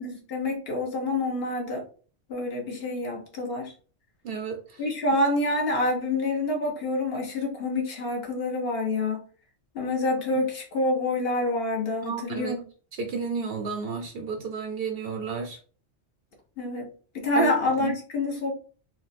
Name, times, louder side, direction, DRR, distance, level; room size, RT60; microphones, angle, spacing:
voice 1, 0.0-1.8 2.3-3.7 4.8-9.2 9.7-12.6 16.6-16.9 17.1-18.5, left 2 dB, 60° left, 0 dB, 1.0 m, -27 dB
voice 2, 4.2-4.8 10.3-10.4 12.0-12.6 12.9-15.6 17.4-17.5 17.8-17.9, right 5 dB, 65° right, 4 dB, 0.7 m, -32 dB
3.7 x 2.1 x 2.5 m, 0.40 s
omnidirectional pair, 1.2 m